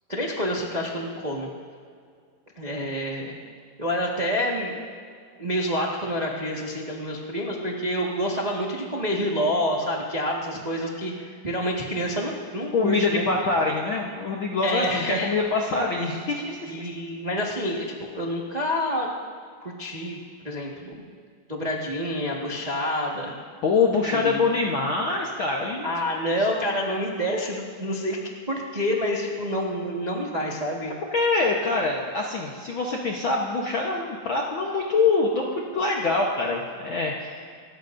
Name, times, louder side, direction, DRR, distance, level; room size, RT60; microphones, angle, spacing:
voice 1, 0.1-1.5 2.6-3.4 3.8-4.7 5.4-13.2 14.6-15.3 16.7-19.1 19.6-20.9 21.5-23.3 24.1-24.6 25.8-28.2 28.5-30.9, equal, 35° right, -3 dB, 0.6 m, -28 dB
voice 2, 12.7-16.9 23.6-25.9 31.1-35.5 35.7-37.4, left 3 dB, 60° left, -2 dB, 1.3 m, -24 dB
27.5 x 14.5 x 2.7 m, 2.1 s
omnidirectional pair, 3.8 m